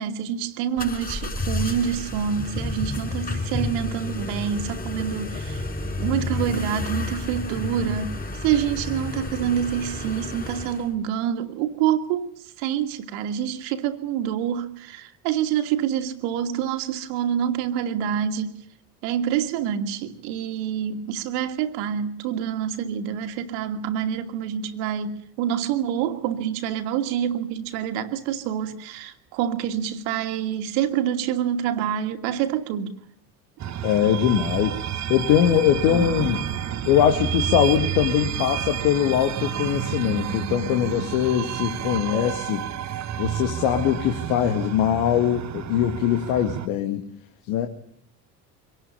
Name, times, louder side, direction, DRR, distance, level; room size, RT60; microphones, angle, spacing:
voice 1, 0.0-5.6 6.0-18.6 19.0-32.9, right 9 dB, 60° right, 2.5 m, -27 dB
sound 1, 0.8-10.9, left 2 dB, 20° left, 5.7 m, -31 dB
sound 2, 33.6-46.7, right 10 dB, 35° right, 1.5 m, -30 dB
voice 2, 33.8-34.8 35.1-36.4 36.8-42.6 43.2-47.0 47.5-47.7, left 10 dB, 60° left, 2.3 m, -22 dB
25.5 x 18.5 x 8.5 m
figure-of-eight pair, 65°, 48 cm